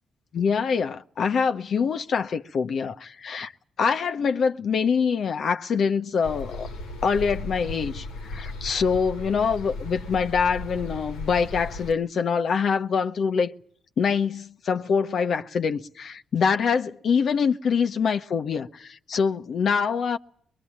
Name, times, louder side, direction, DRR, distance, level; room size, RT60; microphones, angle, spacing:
voice 1, 0.3-3.5 3.8-6.7 7.0-13.5 14.0-20.2, left 6 dB, 65° left, 1.0 m, -24 dB
sound 1, 6.2-11.9, left 2 dB, 90° left, 1.7 m, -36 dB
22.5 x 22.0 x 8.7 m
hypercardioid pair, 50°, 0 cm